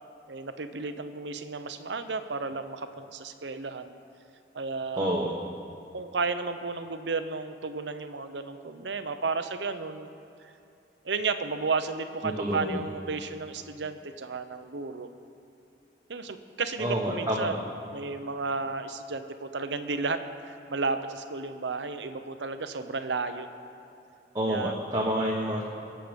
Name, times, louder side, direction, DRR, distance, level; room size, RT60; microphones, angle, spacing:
voice 1, 0.3-3.9 4.5-5.2 5.9-10.1 10.4-10.5 11.0-15.1 16.1-23.5 24.5-24.7, right 4 dB, 85° right, 10 dB, 0.8 m, -33 dB
voice 2, 5.0-5.3 12.4-12.8 16.8-17.5 24.3-25.6, equal, 20° right, -4 dB, 1.3 m, -28 dB
22.5 x 7.8 x 5.2 m, 2.7 s
head